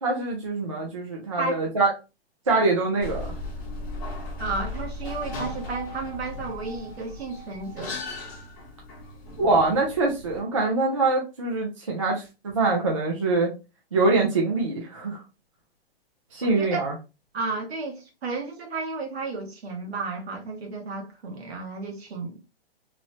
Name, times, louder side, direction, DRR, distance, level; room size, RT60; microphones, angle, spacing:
voice 1, 0.0-1.9 2.5-3.3 9.4-13.5 13.9-15.2 16.3-16.9, right 3 dB, 30° right, 0.4 m, -24 dB
sound 1, 3.0-10.4, left 2 dB, 20° left, 0.6 m, -36 dB
voice 2, 4.4-8.0 16.4-16.8 17.3-22.4, right 3 dB, 75° right, 1.1 m, -33 dB
3.0 x 2.0 x 2.6 m
hypercardioid pair, 180°, 31 cm